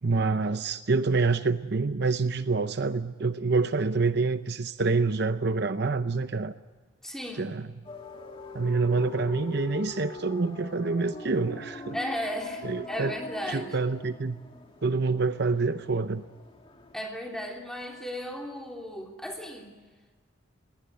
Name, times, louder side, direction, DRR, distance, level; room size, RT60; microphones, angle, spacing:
voice 1, 0.0-6.5 7.4-7.7 8.5-12.0 12.6-13.1 13.5-14.4 14.8-16.2, right 3 dB, 55° right, 11 dB, 0.7 m, -27 dB
voice 2, 7.0-7.6 11.9-13.7 16.9-19.7, equal, 5° left, 1 dB, 3.2 m, -35 dB
sound 1, 7.8-17.0, left 3 dB, 25° left, 2.1 m, -42 dB
21.5 x 18.5 x 9.3 m, 1.4 s
head